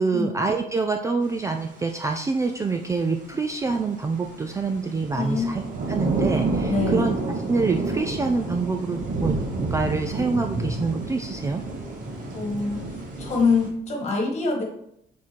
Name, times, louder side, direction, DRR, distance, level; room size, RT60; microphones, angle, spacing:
voice 1, 0.0-5.6 5.9-7.1 7.5-11.6, right 4 dB, 15° right, 4 dB, 0.3 m, -26 dB
sound 1, 2.3-2.4 2.7-13.7, right 3 dB, 45° right, 1.6 m, -30 dB
voice 2, 5.1-5.5 6.7-7.0 12.3-12.8 13.2-14.6, left 4 dB, 40° left, 1 dB, 1.7 m, -24 dB
7.3 x 3.7 x 4.5 m, 0.76 s
cardioid pair, 170°, 18 cm